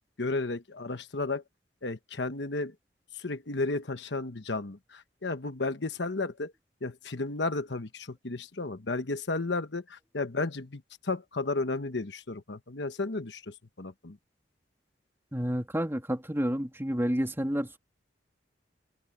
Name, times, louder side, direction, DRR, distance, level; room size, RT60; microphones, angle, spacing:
voice 1, 0.2-1.4 1.8-2.7 3.1-6.5 6.8-14.2, left 3 dB, 70° left, 1.2 m, -33 dB
voice 2, 15.3-17.8, equal, 15° right, 2.8 m, -30 dB
head